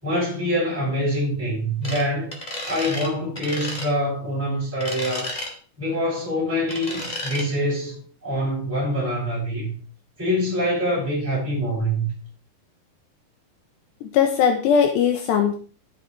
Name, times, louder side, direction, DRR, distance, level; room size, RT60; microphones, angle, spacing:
voice 1, 0.0-2.3 2.7-5.3 5.8-9.7 10.2-12.1, equal, 5° right, 7.0 m, -25 dB
sound 1, 1.8-2.0 2.3-3.1 3.3-3.9 4.8-5.5 6.7-7.4, left 1 dB, 15° left, 1.6 m, -32 dB
voice 2, 14.0-15.6, left 7 dB, 75° left, 3.1 m, -19 dB
13.5 x 10.5 x 3.4 m
omnidirectional pair, 5.2 m